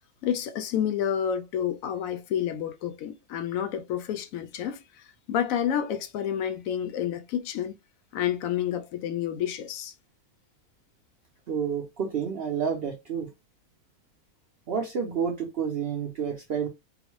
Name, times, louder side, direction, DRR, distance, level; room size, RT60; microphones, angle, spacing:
voice 1, 0.2-7.8 8.1-9.9, left 9 dB, 70° left, 0.9 m, -29 dB
voice 2, 11.5-13.3 14.7-16.7, right 7 dB, 70° right, 0.5 m, -29 dB
3.8 x 2.1 x 3.0 m
omnidirectional pair, 1.6 m